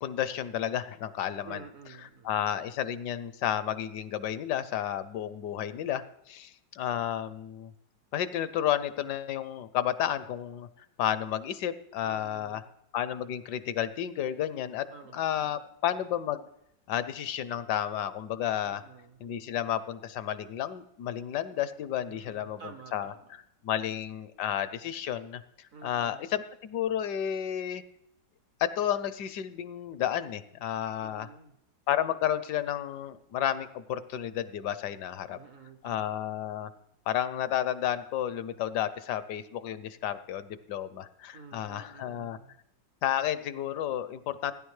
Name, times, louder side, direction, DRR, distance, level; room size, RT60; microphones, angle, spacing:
voice 1, 0.0-1.6 2.2-7.7 8.1-10.7 11.0-12.6 12.9-14.9 15.1-16.4 16.9-18.8 19.2-22.6 22.9-23.1 23.6-25.4 25.8-27.8 28.6-31.3 31.9-35.4 35.8-36.7 37.1-42.4 43.0-44.5, left 10 dB, 75° left, 14 dB, 1.1 m, -31 dB
voice 2, 1.4-2.3 12.0-12.7 14.9-15.6 18.6-19.2 22.1-23.4 25.7-26.3 31.0-31.6 35.3-36.2 41.3-42.6, right 5 dB, 65° right, 6 dB, 0.9 m, -50 dB
16.0 x 9.8 x 3.2 m, 0.77 s
omnidirectional pair, 1.9 m